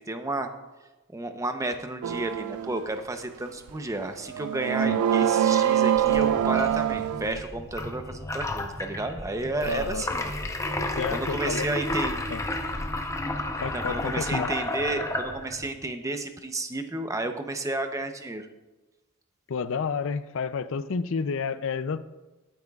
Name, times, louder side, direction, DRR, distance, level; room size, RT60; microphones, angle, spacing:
voice 1, 0.1-0.5 1.1-10.3 11.1-12.2 13.7-18.5, right 2 dB, 15° right, 6 dB, 0.7 m, -32 dB
sound 1, 2.0-2.8 3.7-3.8 4.3-7.4, right 9 dB, 80° right, 0.3 m, -24 dB
sound 2, 6.0-15.7, left 1 dB, 15° left, 0.7 m, -32 dB
voice 2, 9.6-10.0 11.0-11.7 12.3-12.4 13.6-14.5 19.5-22.0, left 5 dB, 60° left, 13 dB, 0.4 m, -30 dB
20.5 x 8.9 x 2.4 m, 1.1 s
head